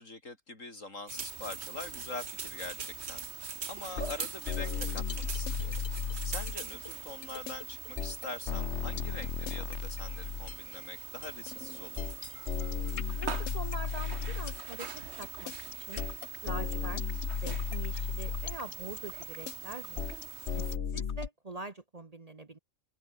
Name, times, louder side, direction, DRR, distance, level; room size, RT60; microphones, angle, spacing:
voice 1, 0.0-3.3 3.7-5.9 6.2-12.1, left 2 dB, 75° left, 5.2 m, -44 dB
sound 1, 1.1-20.8, right 5 dB, 55° right, 1.8 m, -42 dB
sound 2, 4.0-10.8 11.2-21.3, left 7 dB, 60° left, 1.4 m, -35 dB
voice 2, 13.2-15.5 15.8-16.1 16.4-17.0 17.4-20.1 20.5-22.6, right 2 dB, 30° right, 1.2 m, -44 dB
open air
omnidirectional pair, 1.3 m